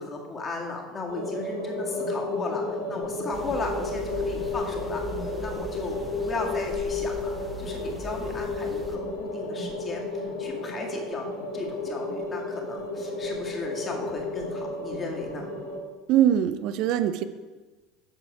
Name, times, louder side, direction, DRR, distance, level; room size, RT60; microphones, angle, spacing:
voice 1, 0.0-5.0 5.4-11.3 11.5-15.5, left 3 dB, 25° left, 0 dB, 1.9 m, -36 dB
sound 1, 1.1-15.8, left 2 dB, 70° left, 1.5 m, -32 dB
sound 2, 3.3-9.0, equal, 5° right, 1.2 m, -40 dB
voice 2, 16.1-17.2, right 10 dB, 55° right, 11 dB, 0.4 m, -22 dB
7.5 x 6.9 x 4.8 m, 1.3 s
figure-of-eight pair, 70°, 0 cm